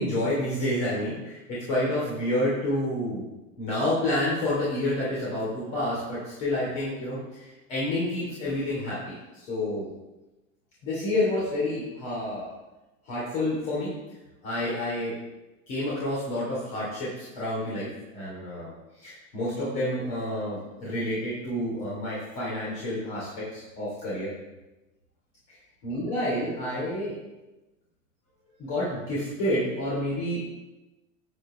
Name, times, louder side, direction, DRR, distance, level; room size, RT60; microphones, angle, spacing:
voice 1, 0.0-3.2 3.6-9.9 10.8-12.5 13.0-13.9 14.4-15.1 15.7-18.7 19.0-24.3 25.5-25.6 25.8-27.1 28.6-30.5, left 1 dB, 60° left, -7 dB, 3.2 m, -29 dB
9.6 x 7.9 x 3.3 m, 1.0 s
hypercardioid pair, 80°, 41 cm